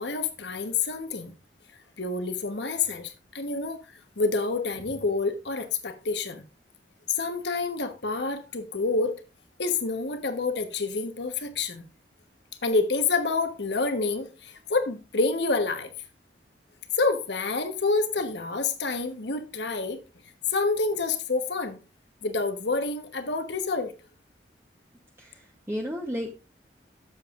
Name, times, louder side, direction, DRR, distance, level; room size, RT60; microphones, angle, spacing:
voice 1, 0.0-1.3 2.0-3.8 4.2-6.4 7.1-9.1 9.6-11.8 12.6-15.9 17.0-20.0 20.5-21.8 22.2-23.9, left 3 dB, 75° left, 1.2 m, -28 dB
voice 2, 25.2-26.3, equal, 15° right, 0.9 m, -33 dB
12.0 x 7.6 x 2.5 m
head